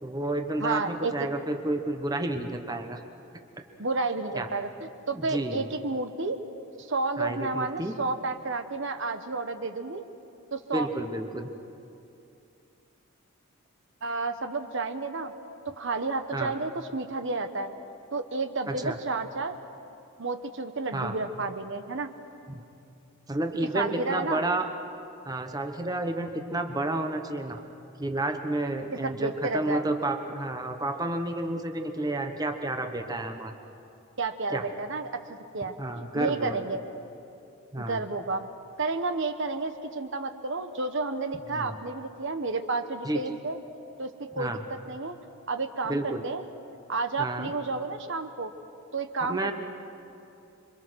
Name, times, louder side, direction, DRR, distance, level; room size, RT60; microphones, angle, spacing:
voice 1, 0.0-3.0 4.4-4.5 5.1-5.7 7.2-7.9 10.7-11.5 16.3-16.5 18.7-19.0 20.9-21.1 22.5-22.6 23.3-24.7 25.2-27.6 28.0-33.5 34.5-34.6 35.8-36.6 37.7-38.0 41.5-41.8 43.0-43.2 44.4-44.6 45.9-46.2 47.2-47.5 49.2-49.5, right 2 dB, 15° right, 5 dB, 1.1 m, -30 dB
voice 2, 0.6-1.1 3.8-6.4 6.8-10.0 10.5-10.9 14.0-15.3 15.6-17.7 18.1-19.5 20.2-22.1 23.7-24.4 28.9-29.8 34.2-36.8 37.8-38.5 38.8-43.6 44.0-45.2 45.5-46.4 46.9-48.5 48.9-49.5, right 3 dB, 55° right, 8 dB, 1.0 m, -31 dB
27.5 x 24.0 x 6.3 m, 2.7 s
head